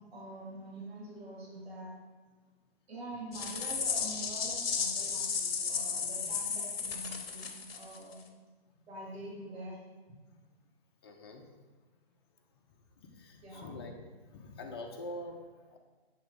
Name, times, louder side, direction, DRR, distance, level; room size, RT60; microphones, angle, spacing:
voice 1, 0.0-1.9 2.9-8.2 8.9-9.8 13.4-13.7, right 1 dB, 75° right, -4 dB, 2.1 m, -45 dB
sound 1, 3.3-8.1, left 5 dB, 65° left, 0.9 m, -34 dB
voice 2, 11.0-11.4 13.1-14.0 14.3-15.8, left 2 dB, 25° left, 2 dB, 0.6 m, -44 dB
7.5 x 3.1 x 5.1 m, 1.3 s
hypercardioid pair, 155°, 31 cm